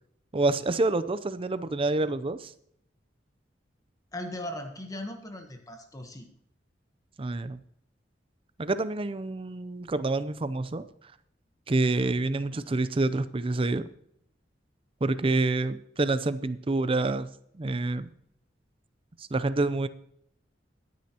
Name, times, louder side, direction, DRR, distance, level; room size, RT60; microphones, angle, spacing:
voice 1, 0.3-2.5 7.2-7.6 8.6-10.8 11.7-13.9 15.0-17.3 17.5-18.1 19.2-19.9, right 2 dB, 30° right, 13 dB, 0.5 m, -27 dB
voice 2, 4.1-6.3 12.5-12.8, left 1 dB, 20° left, 4 dB, 1.1 m, -38 dB
21.5 x 9.4 x 2.9 m, 0.73 s
head